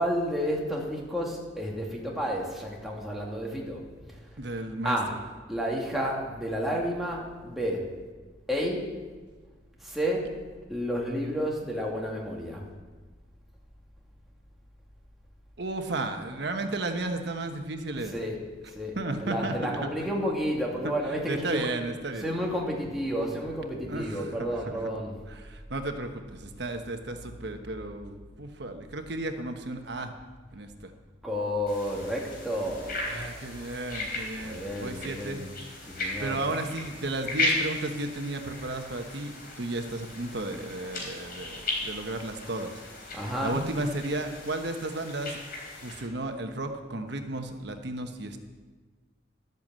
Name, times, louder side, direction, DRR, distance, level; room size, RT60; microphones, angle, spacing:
voice 1, 0.0-3.8 4.8-5.2 5.5-7.9 8.5-8.9 9.8-10.3 10.7-12.6 18.0-18.4 18.7-21.7 22.2-25.1 27.1-27.2 29.0-29.1 31.2-33.3 34.4-35.5 35.9-36.4 43.1-43.8, equal, ahead, -3 dB, 2.3 m, -31 dB
voice 2, 4.4-5.0 15.6-18.1 19.0-19.5 19.8-20.1 20.8-20.9 21.2-22.3 23.9-24.8 25.3-30.1 30.5-30.9 33.1-35.8 36.2-42.8 43.4-45.4 45.8-48.4, right 2 dB, 65° right, 6 dB, 1.2 m, -34 dB
sound 1, 31.7-46.0, left 2 dB, 55° left, 3.7 m, -36 dB
12.0 x 8.2 x 7.5 m, 1.4 s
head